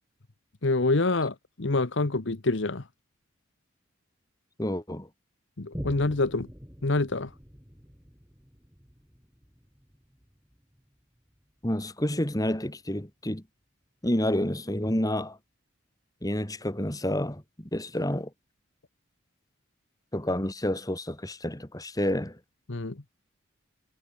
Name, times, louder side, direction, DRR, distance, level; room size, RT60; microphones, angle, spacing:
voice 1, 0.6-2.9 5.6-6.5 6.8-7.3 22.7-23.0, left 2 dB, 60° left, 1.1 m, -26 dB
voice 2, 4.6-5.1 11.6-13.4 14.0-15.4 16.2-18.3 20.1-22.4, left 1 dB, 20° left, 2.6 m, -29 dB
Boom, 5.7-12.6 13.2-13.3, equal, 10° right, 5.2 m, -46 dB
head